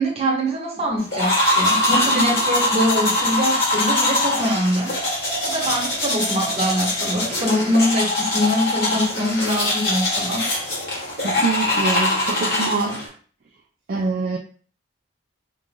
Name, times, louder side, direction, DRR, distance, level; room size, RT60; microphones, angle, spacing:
voice 1, 0.0-5.0 5.4-10.5, equal, 35° right, -1 dB, 1.0 m, -23 dB
sound 1, 1.1-13.1, left 1 dB, 55° left, 1.4 m, -22 dB
voice 2, 11.2-13.1 13.9-14.4, right 4 dB, 50° right, 1 dB, 0.4 m, -25 dB
2.9 x 2.5 x 3.6 m, 0.42 s
head